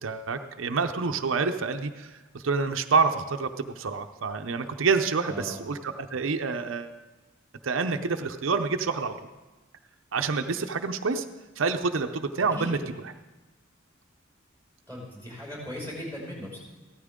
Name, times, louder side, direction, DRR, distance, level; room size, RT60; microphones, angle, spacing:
voice 1, 0.0-6.9 7.6-9.1 10.1-11.2 11.6-13.1, right 4 dB, 85° right, 7 dB, 0.7 m, -27 dB
voice 2, 14.9-16.6, equal, 10° left, -3 dB, 5.4 m, -38 dB
15.5 x 13.5 x 3.7 m, 1.1 s
head